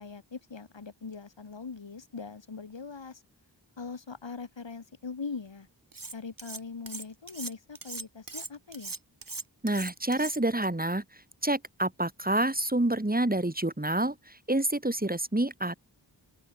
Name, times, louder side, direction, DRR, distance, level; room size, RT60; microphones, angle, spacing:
voice 1, 0.0-3.2 3.8-5.7 6.1-8.9, left 5 dB, 90° left, 5.7 m, -41 dB
Cutlery silverware, 5.9-6.6 6.9-10.7, right 3 dB, 50° right, 4.3 m, -40 dB
voice 2, 9.6-11.0 11.4-15.8, right 1 dB, 20° right, 4.5 m, -28 dB
open air
wide cardioid pair, 55°, 43 cm